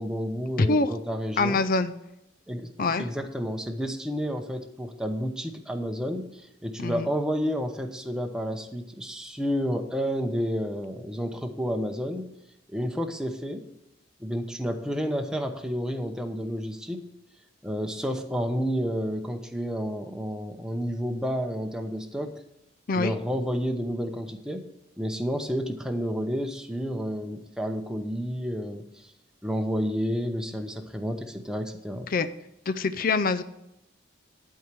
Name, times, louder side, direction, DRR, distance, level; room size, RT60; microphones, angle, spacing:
voice 1, 0.0-1.6 2.5-12.3 12.7-13.7 14.2-17.0 17.6-22.4 22.9-24.7 25.0-29.1 29.4-32.1, equal, 5° right, 4 dB, 0.8 m, -30 dB
voice 2, 0.6-0.9 1.4-1.9 2.8-3.1 6.8-7.1 22.9-23.1 32.1-32.3 32.7-33.4, left 3 dB, 45° left, 12 dB, 0.5 m, -24 dB
12.0 x 4.7 x 7.6 m, 0.85 s
head